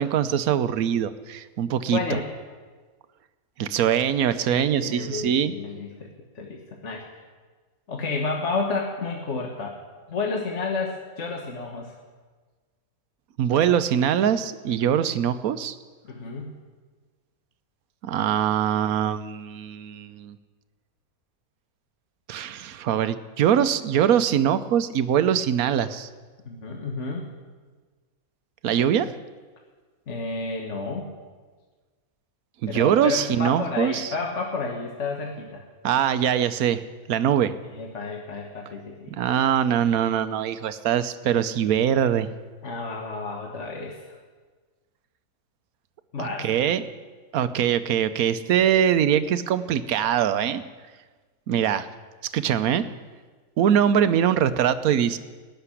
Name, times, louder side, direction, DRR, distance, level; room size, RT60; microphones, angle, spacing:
voice 1, 0.0-2.0 3.6-5.5 13.4-15.7 18.0-20.4 22.3-26.1 28.6-29.1 32.6-34.1 35.8-36.8 37.1-37.5 39.1-42.3 46.2-46.8 47.3-50.6 51.5-51.9 52.3-52.9 53.6-55.2, right 9 dB, 75° right, 12 dB, 1.2 m, -22 dB
voice 2, 1.9-2.2 4.4-6.1 6.3-7.0 7.9-9.8 10.1-11.9 16.1-16.5 26.5-27.3 30.1-31.1 32.7-35.6 37.6-39.1 42.6-44.1 46.1-46.5, left 3 dB, 50° left, 0 dB, 1.7 m, -31 dB
18.0 x 6.9 x 9.8 m, 1.4 s
omnidirectional pair, 1.6 m